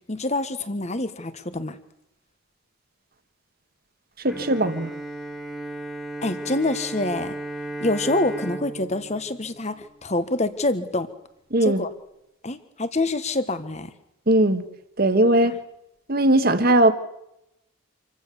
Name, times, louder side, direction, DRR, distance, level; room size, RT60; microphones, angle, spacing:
voice 1, 0.1-1.8 6.2-7.3 7.8-11.1 11.6-11.9 12.4-13.9, left 2 dB, 30° left, 1.3 m, -26 dB
voice 2, 4.2-4.9 11.5-11.8 14.3-14.6 15.0-15.6 16.1-16.9, right 1 dB, 45° right, 1.5 m, -19 dB
Bowed string instrument, 4.3-10.4, right 1 dB, ahead, 1.9 m, -35 dB
27.0 x 15.5 x 7.0 m
head